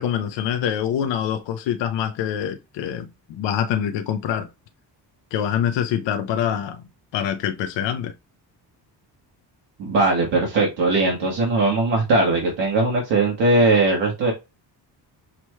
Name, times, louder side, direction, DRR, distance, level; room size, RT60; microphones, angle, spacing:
voice 1, 0.0-4.5 5.3-6.8 7.1-8.1, left 9 dB, 85° left, 0.6 m, -25 dB
voice 2, 9.8-14.3, right 2 dB, 80° right, 1.5 m, -19 dB
5.9 x 2.2 x 3.0 m
cardioid pair, 155°, 43 cm